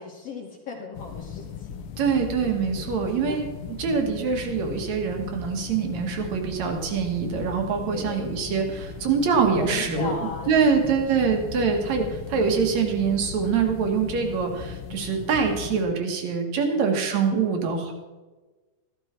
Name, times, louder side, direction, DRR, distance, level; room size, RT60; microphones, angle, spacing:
voice 1, 0.0-1.7 3.0-3.5 7.9-8.3 9.5-10.7 16.7-17.1, left 4 dB, 55° left, -3 dB, 2.3 m, -36 dB
sound 1, 0.9-15.9, left 7 dB, 90° left, 1.2 m, -37 dB
voice 2, 2.0-3.5 3.8-10.1 10.5-17.9, right 5 dB, 65° right, 3 dB, 2.9 m, -24 dB
14.0 x 12.5 x 4.5 m, 1.2 s
omnidirectional pair, 3.6 m